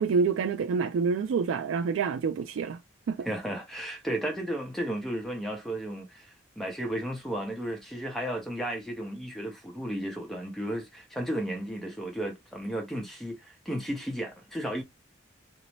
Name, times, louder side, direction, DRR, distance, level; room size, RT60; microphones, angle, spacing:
voice 1, 0.0-2.8 3.1-3.3, right 5 dB, 80° right, 0.3 m, -27 dB
voice 2, 3.2-14.8, right 1 dB, ahead, 0.7 m, -34 dB
2.6 x 2.0 x 3.0 m
head